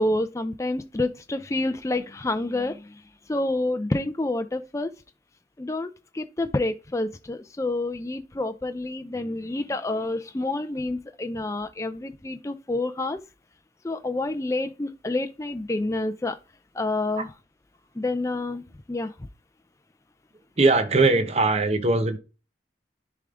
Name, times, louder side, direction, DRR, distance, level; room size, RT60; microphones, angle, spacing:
voice 1, 0.0-3.0 3.3-4.9 5.6-13.2 13.8-16.4 16.7-17.3 18.0-19.1, left 2 dB, 15° left, 0.4 m, -28 dB
voice 2, 20.6-22.2, right 3 dB, 35° right, 0.8 m, -20 dB
10.5 x 3.5 x 3.7 m
head